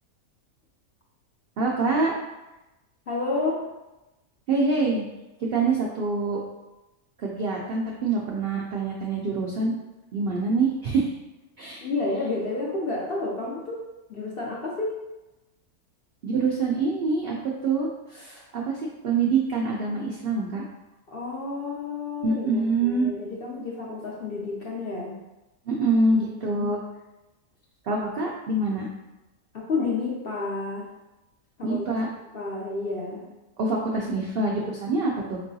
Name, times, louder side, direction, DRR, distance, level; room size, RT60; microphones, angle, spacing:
voice 1, 1.6-2.1 4.5-5.0 5.4-6.4 7.2-9.7 10.1-11.1 11.6-11.8 16.2-20.6 22.2-23.1 25.7-26.8 27.8-28.9 31.6-32.1 33.6-35.4, right 3 dB, 75° right, -2 dB, 0.5 m, -25 dB
voice 2, 3.1-3.7 11.8-13.8 14.1-15.0 21.1-25.1 29.5-30.9 31.6-31.8 32.3-33.3, left 3 dB, 55° left, -3 dB, 0.6 m, -30 dB
4.5 x 3.0 x 2.6 m, 1.0 s
omnidirectional pair, 1.6 m